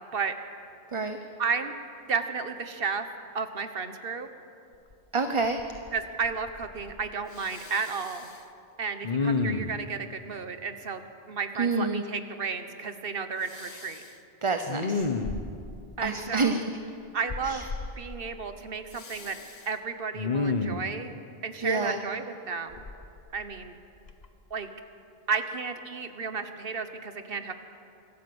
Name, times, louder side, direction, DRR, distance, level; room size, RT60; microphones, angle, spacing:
voice 1, 1.4-1.7 2.1-3.1 3.3-4.3 5.9-8.3 8.8-11.0 11.3-14.0 16.0-16.6 17.1-17.7 18.0-19.4 19.7-21.1 21.4-22.8 23.3-23.7 24.5-24.7 25.3-27.5, right 5 dB, 60° right, 9 dB, 1.4 m, -32 dB
Respiratory sounds, 4.9-5.0 5.4-6.0 6.2-7.0 7.3-8.4 9.0-9.9 13.5-14.1 14.6-15.7 17.3-17.9 18.9-19.6 20.1-20.9 22.7-23.7 24.1-24.3, left 4 dB, 40° left, 1.1 m, -32 dB
voice 2, 5.1-5.6 11.6-12.0 14.4-15.1 16.0-16.6 17.4-17.6 21.6-22.0, right 3 dB, 30° right, 6 dB, 0.9 m, -27 dB
25.5 x 14.0 x 7.9 m, 2.6 s
omnidirectional pair, 1.1 m